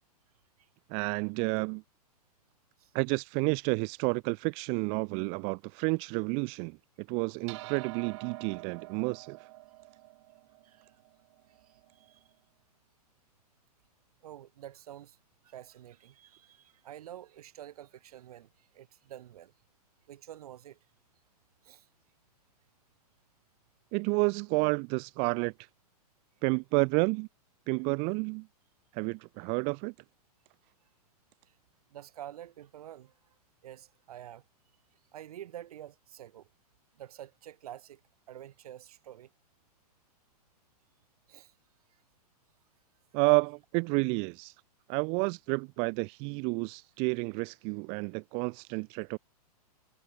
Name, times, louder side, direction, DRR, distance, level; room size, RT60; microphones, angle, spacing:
voice 1, 0.9-1.8 2.9-6.8 7.1-9.5 23.9-25.5 26.4-27.3 27.7-28.5 28.9-29.9 43.1-44.5 44.9-49.2, right 36 dB, 30° right, 0.5 m, -30 dB
sound 1, 7.5-12.1, right 20 dB, 45° right, 1.8 m, -47 dB
voice 2, 11.6-12.2 14.2-15.2 15.4-19.5 20.1-20.8 21.6-21.9 31.9-33.1 33.6-34.4 35.1-36.5 36.9-38.0 38.3-39.3 41.3-41.5, right 12 dB, 70° right, 2.9 m, -48 dB
hypercardioid pair, 145°, 20 cm